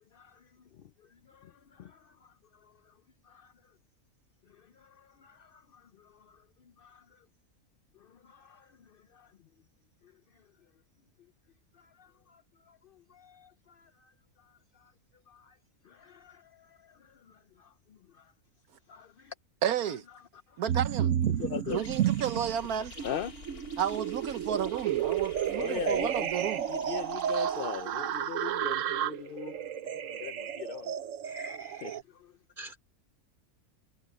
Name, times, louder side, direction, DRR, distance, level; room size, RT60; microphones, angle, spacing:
voice 1, 0.0-3.0 3.2-3.7 4.4-7.3 7.9-9.4 10.0-10.5 11.7-14.9 15.3-15.6 15.8-18.3 18.9-19.3 19.9-20.6 21.3-21.9 22.3-22.4 23.0-23.6 25.4-26.3 26.7-31.0 31.8-32.4, left 9 dB, 60° left, 0.6 m, -43 dB
voice 2, 19.6-20.0 20.6-21.1 21.7-23.0 23.8-26.7, right 9 dB, 80° right, 1.4 m, -32 dB
sound 1, 20.7-22.6 23.0-32.0, right 10 dB, 65° right, 1.1 m, -32 dB
sound 2, 21.7-28.7, left 3 dB, 85° left, 3.1 m, -51 dB
voice 3, 31.2-32.0 32.6-32.8, right 1 dB, 35° right, 3.2 m, -44 dB
omnidirectional pair, 1.5 m